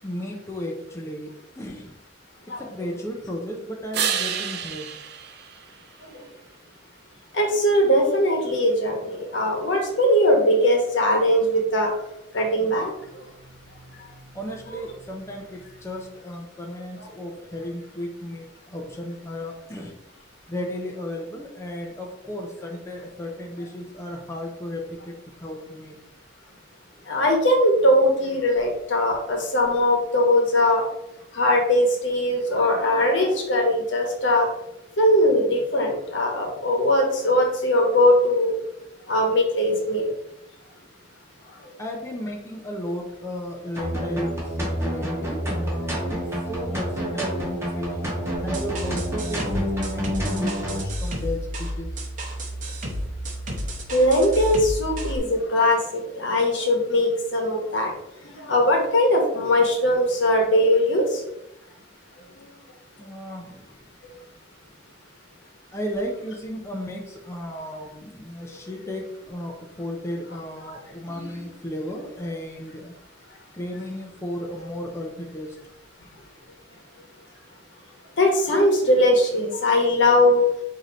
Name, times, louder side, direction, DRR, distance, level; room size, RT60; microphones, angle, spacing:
voice 1, 0.0-1.3 1.6-2.0 2.6-4.9 14.3-20.0 20.5-26.0 41.8-51.9 63.0-63.8 65.7-72.9 73.5-75.6, equal, 15° left, 0 dB, 0.5 m, -34 dB
sound 1, 3.9-6.5 12.2-16.2, right 8 dB, 60° right, 0.5 m, -34 dB
voice 2, 7.3-11.9 12.3-12.9 27.1-30.8 31.3-34.5 35.0-38.6 39.1-40.1 48.2-48.3 53.9-57.9 58.2-61.2 71.1-71.4 78.2-80.4, left 1 dB, 70° left, 1 dB, 1.1 m, -20 dB
sound 2, 43.8-50.8, equal, 15° right, 1.2 m, -28 dB
sound 3, 48.3-55.2, equal, 45° right, 0.8 m, -32 dB
4.7 x 2.8 x 3.8 m, 0.84 s
head